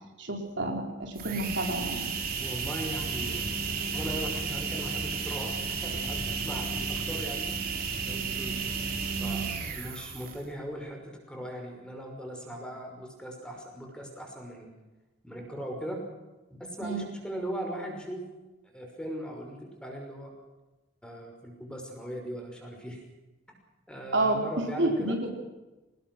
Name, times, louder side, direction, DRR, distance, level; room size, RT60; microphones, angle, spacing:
voice 1, 0.2-2.1 16.8-17.1 24.1-25.3, right 2 dB, 70° right, 2 dB, 4.6 m, -29 dB
sound 1, 1.0-10.5, right 5 dB, 50° right, 3.6 m, -33 dB
voice 2, 2.4-3.4 3.9-7.6 8.0-8.6 9.2-9.4 9.7-14.7 15.2-16.0 16.6-18.3 18.7-20.3 21.0-23.0 23.9-25.2, equal, 5° left, 2 dB, 5.8 m, -39 dB
24.5 x 20.0 x 6.3 m, 1.1 s
head